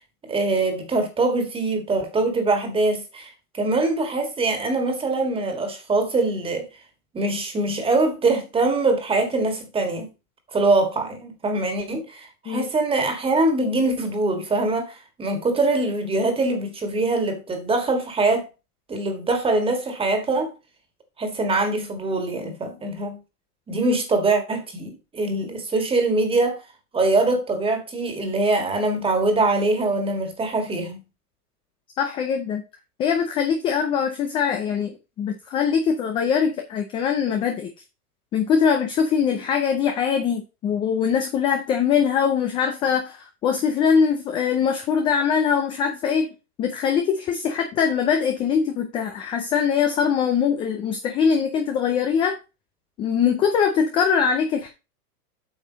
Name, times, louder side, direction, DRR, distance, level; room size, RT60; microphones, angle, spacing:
voice 1, 0.3-6.7 7.1-10.1 10.5-18.5 18.9-20.5 21.2-23.2 23.7-26.6 26.9-31.0, right 2 dB, 10° right, 1.8 m, -23 dB
voice 2, 32.0-32.6 33.0-37.7 38.3-46.3 46.6-52.4 53.0-54.7, left 7 dB, 10° left, 0.4 m, -22 dB
8.5 x 5.3 x 4.0 m
hypercardioid pair, 140°, 47 cm